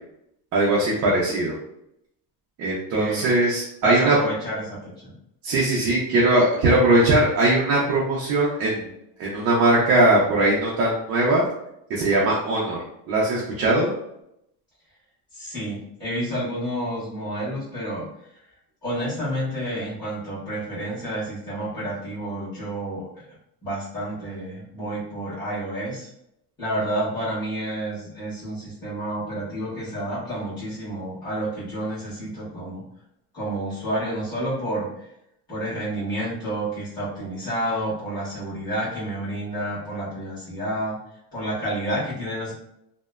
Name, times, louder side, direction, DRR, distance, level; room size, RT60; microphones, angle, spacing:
voice 1, 0.5-1.6 2.6-4.2 5.4-8.9 9.2-11.4 11.9-12.8 13.1-13.9, right 2 dB, 40° right, -5 dB, 0.4 m, -20 dB
voice 2, 2.9-3.3 3.8-5.1 15.3-18.1 18.8-23.2 23.6-26.1 26.6-32.8 33.3-35.1 35.5-41.0 41.3-42.5, right 1 dB, 10° left, -14 dB, 1.4 m, -29 dB
2.9 x 2.1 x 2.3 m, 0.80 s
cardioid pair, 170°, 41 cm